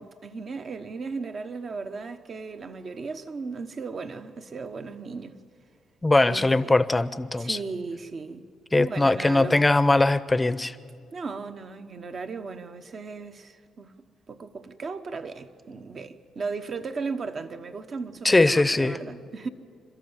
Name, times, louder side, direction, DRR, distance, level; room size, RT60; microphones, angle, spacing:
voice 1, 0.0-5.4 6.2-6.7 7.4-8.5 8.7-9.6 11.1-13.9 14.3-19.5, right 4 dB, 45° right, 1.1 m, -36 dB
voice 2, 6.0-7.6 8.7-10.7 18.2-19.0, left 2 dB, 15° left, 0.7 m, -21 dB
28.0 x 13.0 x 8.9 m
cardioid pair, 90°, 0 cm